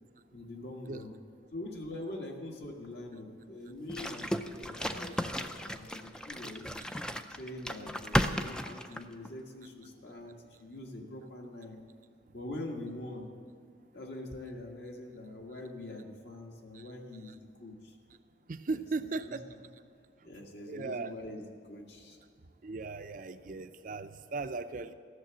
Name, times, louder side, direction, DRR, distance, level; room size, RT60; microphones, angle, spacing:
voice 1, 0.3-1.1 1.5-6.8 7.3-11.8 12.3-13.3 13.9-17.9 18.7-18.8 19.2-19.4 20.2-22.2, left 1 dB, 65° left, 1 dB, 1.7 m, -44 dB
sound 1, 3.9-9.3, equal, 5° left, 0.4 m, -34 dB
voice 2, 18.5-19.4 20.7-21.1 22.6-24.9, right 3 dB, 45° right, 11 dB, 0.5 m, -37 dB
14.0 x 7.0 x 8.7 m, 2.2 s
head